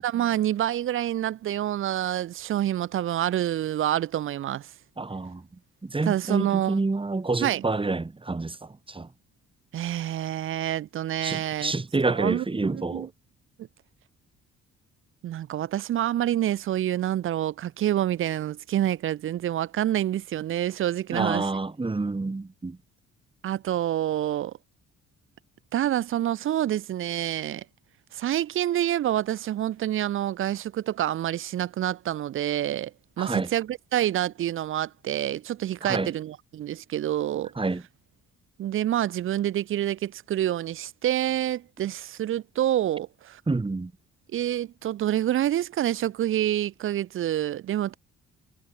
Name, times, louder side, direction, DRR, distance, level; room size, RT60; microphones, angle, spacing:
voice 1, 0.0-4.7 6.0-6.8 7.4-7.6 9.7-11.7 12.1-13.1 15.2-21.5 23.4-24.5 25.7-27.6 28.1-32.9 33.2-37.5 38.6-43.4 44.3-48.0, right 12 dB, 45° right, 0.4 m, -27 dB
voice 2, 5.0-5.5 5.8-9.1 11.2-13.1 21.1-22.8 33.2-33.5 35.8-36.1 37.6-37.8 43.5-43.9, right 3 dB, 15° right, 1.7 m, -28 dB
cardioid pair, 90°, 30 cm